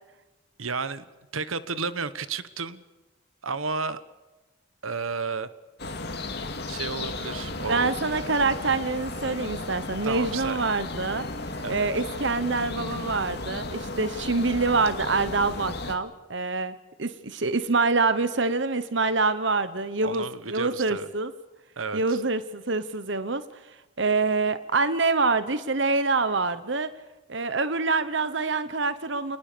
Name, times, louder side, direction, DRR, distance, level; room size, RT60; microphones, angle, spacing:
voice 1, 0.6-1.0 1.3-2.8 3.4-4.0 4.8-5.5 6.7-8.0 10.0-10.6 11.6-11.9 20.0-21.1 21.8-22.2, right 4 dB, 90° right, 14 dB, 1.3 m, -32 dB
sound 1, 5.8-16.0, left 2 dB, 55° left, 2.4 m, -34 dB
voice 2, 7.7-11.3 11.7-21.3 21.9-23.4 24.0-26.9 27.3-29.4, right 3 dB, 60° right, 13 dB, 1.1 m, -26 dB
28.0 x 20.0 x 6.8 m, 1.1 s
head